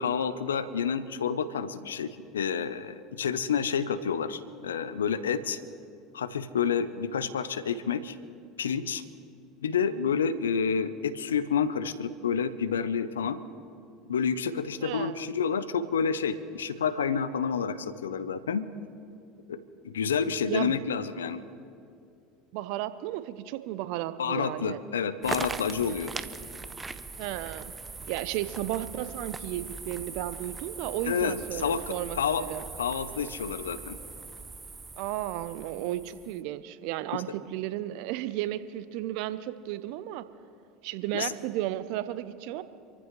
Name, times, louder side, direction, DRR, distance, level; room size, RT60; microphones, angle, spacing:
voice 1, 0.0-5.6 6.1-8.2 8.6-9.0 9.6-13.4 14.1-18.6 19.5-19.6 19.8-21.4 24.2-26.1 31.1-32.4 32.8-34.0 41.1-41.3, left 6 dB, 85° left, 14 dB, 0.7 m, -29 dB
voice 2, 14.8-15.3 20.5-20.8 22.5-24.8 27.2-27.7 28.1-32.6 35.0-40.3 40.8-42.6, right 14 dB, 65° right, 13 dB, 0.7 m, -34 dB
sound 1, 25.2-36.4, right 4 dB, 20° right, 0.7 m, -40 dB
26.5 x 15.0 x 3.3 m, 2.6 s
hypercardioid pair, 80°, 0 cm